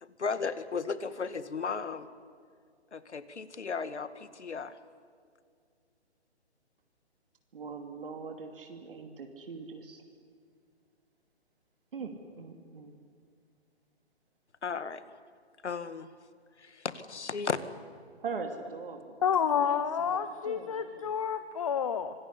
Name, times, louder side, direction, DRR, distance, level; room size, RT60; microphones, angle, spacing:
voice 1, 0.0-2.1 2.9-4.7 14.6-15.0 15.6-16.1 16.6-17.6, left 5 dB, 80° left, 13 dB, 2.0 m, -35 dB
voice 2, 7.5-10.0 11.9-13.0 18.2-19.2 19.6-20.2 20.5-21.1, right 4 dB, 55° right, 5 dB, 2.8 m, -41 dB
voice 3, 19.2-22.1, left 7 dB, 30° left, 11 dB, 0.8 m, -29 dB
26.0 x 19.5 x 9.9 m, 2.2 s
hypercardioid pair, 165°, 34 cm